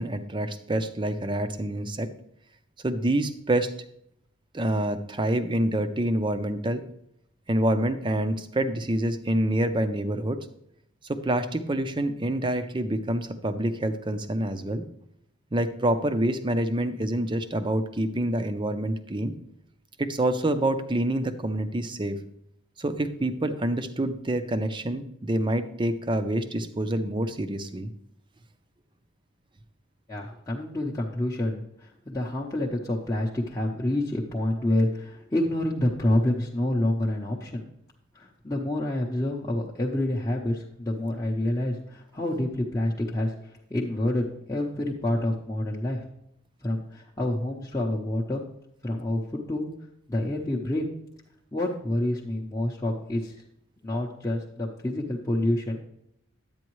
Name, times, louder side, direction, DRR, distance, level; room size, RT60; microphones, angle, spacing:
voice 1, 0.0-2.1 2.8-3.7 4.5-6.8 7.5-10.5 11.0-14.8 15.5-19.3 20.0-22.2 22.8-27.9, right 1 dB, 20° right, 9 dB, 0.6 m, -27 dB
voice 2, 30.1-37.6 38.1-46.1 46.6-48.4 48.8-49.7 50.1-50.9 51.5-53.4 53.8-55.8, left 1 dB, 15° left, -4 dB, 0.8 m, -28 dB
10.5 x 8.9 x 3.1 m, 0.75 s
head